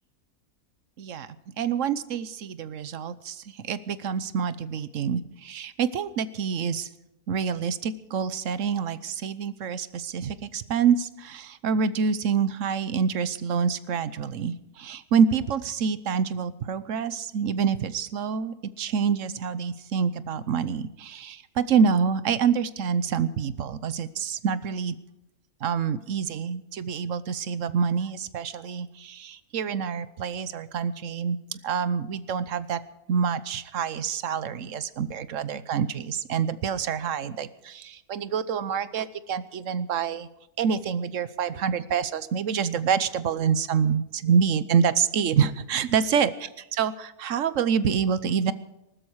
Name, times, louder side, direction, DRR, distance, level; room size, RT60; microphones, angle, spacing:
voice 1, 1.0-1.3 1.6-6.9 7.3-24.9 25.6-32.8 33.1-40.3 40.6-48.5, right 6 dB, 60° right, 15 dB, 1.1 m, -27 dB
19.5 x 13.0 x 4.7 m, 0.90 s
omnidirectional pair, 1.6 m